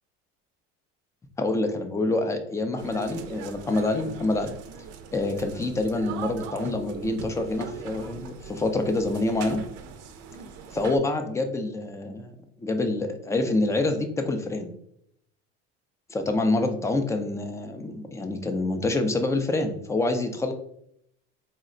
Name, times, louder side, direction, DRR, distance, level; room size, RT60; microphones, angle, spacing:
voice 1, 1.4-4.5 5.1-9.6 10.7-12.3 12.6-14.7 16.1-20.5, left 2 dB, 10° left, 6 dB, 0.4 m, -26 dB
sound 1, 2.8-11.0, right 6 dB, 55° right, 0.5 m, -40 dB
4.1 x 2.1 x 3.7 m, 0.72 s
cardioid pair, 135°, 30 cm